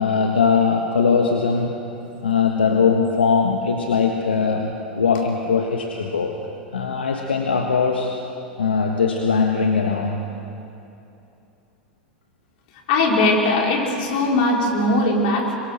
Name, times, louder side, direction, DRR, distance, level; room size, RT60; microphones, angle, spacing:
voice 1, 0.0-1.8 2.2-6.3 6.7-8.1 8.6-10.2, left 5 dB, 80° left, 2 dB, 1.5 m, -20 dB
voice 2, 12.9-15.5, left 2 dB, 55° left, 0 dB, 4.6 m, -19 dB
26.0 x 22.5 x 6.5 m, 2.8 s
figure-of-eight pair, 90°, 6 cm